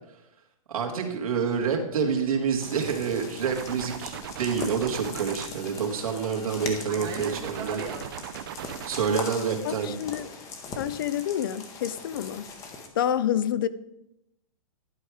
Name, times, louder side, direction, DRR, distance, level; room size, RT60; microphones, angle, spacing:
voice 1, 0.7-7.8 8.9-9.9, right 6 dB, 90° right, 1.9 m, -28 dB
Fixed-wing aircraft airplane, 1.6-8.1, right 7 dB, 20° right, 0.8 m, -43 dB
sound 1, 2.6-12.9, left 4 dB, 20° left, 0.9 m, -40 dB
sound 2, 3.4-6.7 7.1-9.4, right 10 dB, 40° right, 0.5 m, -39 dB
voice 2, 9.6-10.3 10.8-12.5 13.0-13.7, left 10 dB, 40° left, 0.4 m, -28 dB
11.0 x 4.8 x 4.8 m
hypercardioid pair, 165°, 18 cm